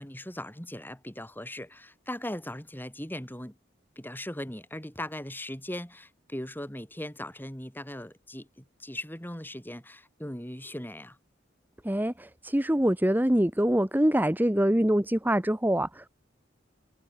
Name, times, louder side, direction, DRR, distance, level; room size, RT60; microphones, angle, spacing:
voice 1, 0.0-3.5 4.0-11.2, left 1 dB, 10° left, 7.4 m, -39 dB
voice 2, 11.8-16.1, right 1 dB, 10° right, 1.1 m, -24 dB
head